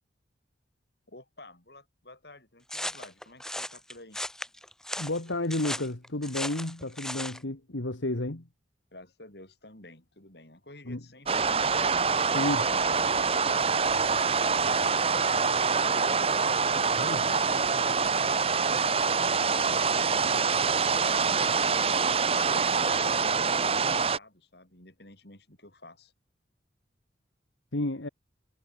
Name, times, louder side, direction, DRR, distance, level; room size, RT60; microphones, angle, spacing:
voice 1, 1.1-4.2 8.9-11.6 16.2-19.8 20.3-22.2 22.8-26.1, left 2 dB, 60° left, 5.2 m, -51 dB
sound 1, 2.7-7.4, left 1 dB, 5° left, 1.4 m, -36 dB
voice 2, 5.0-8.5 10.9-11.0 12.3-12.6 17.0-17.3 27.7-28.1, left 1 dB, 85° left, 2.0 m, -31 dB
sound 2, 11.3-24.2, right 5 dB, 30° right, 1.0 m, -25 dB
head